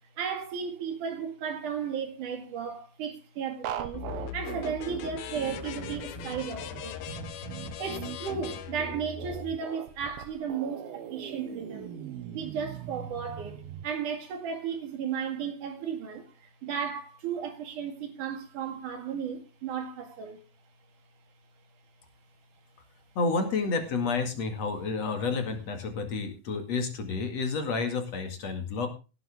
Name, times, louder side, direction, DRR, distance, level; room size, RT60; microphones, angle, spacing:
voice 1, 0.2-7.1 7.8-11.9 12.3-20.4, right 7 dB, 60° right, 3.5 m, -35 dB
sound 1, 3.6-13.8, right 9 dB, 85° right, 3.1 m, -40 dB
sound 2, 3.9-9.5, left 10 dB, 85° left, 3.1 m, -40 dB
voice 2, 23.2-28.9, left 4 dB, 50° left, 2.9 m, -30 dB
17.0 x 10.0 x 3.5 m
omnidirectional pair, 4.2 m